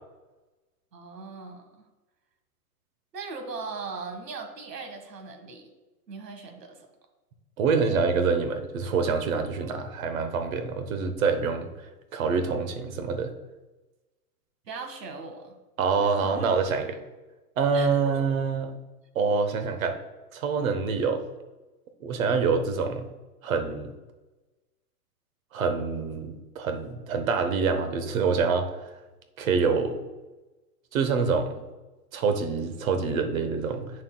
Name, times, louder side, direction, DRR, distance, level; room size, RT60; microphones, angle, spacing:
voice 1, 0.9-1.9 3.1-5.7 6.1-6.9 14.7-15.6 16.0-16.8 17.7-18.2, right 4 dB, 85° right, 4 dB, 1.8 m, -39 dB
voice 2, 7.6-11.7 12.1-13.3 15.8-17.0 17.6-18.7 19.1-20.0 20.3-21.2 22.0-23.1 23.4-23.9 25.5-28.7 29.4-30.0 30.9-31.6 32.1-33.9, right 5 dB, 60° right, 7 dB, 1.1 m, -26 dB
9.5 x 6.5 x 2.3 m, 1.1 s
hypercardioid pair, 165°, 47 cm